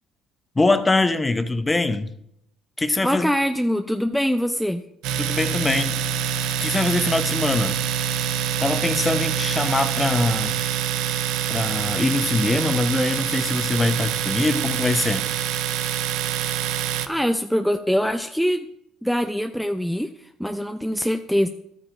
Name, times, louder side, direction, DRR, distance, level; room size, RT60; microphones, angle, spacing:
voice 1, 0.6-2.1 2.8-3.3 5.2-6.0 6.6-7.8 8.6-10.6 11.5-15.3, left 2 dB, 20° left, 10 dB, 0.9 m, -23 dB
voice 2, 3.0-4.8 17.1-18.7 19.0-21.5, equal, ahead, 6 dB, 0.5 m, -23 dB
Domestic sounds home sounds, 5.0-17.1, right 9 dB, 75° right, 0.5 m, -25 dB
12.0 x 8.6 x 2.6 m, 0.76 s
hypercardioid pair, 60°, 0 cm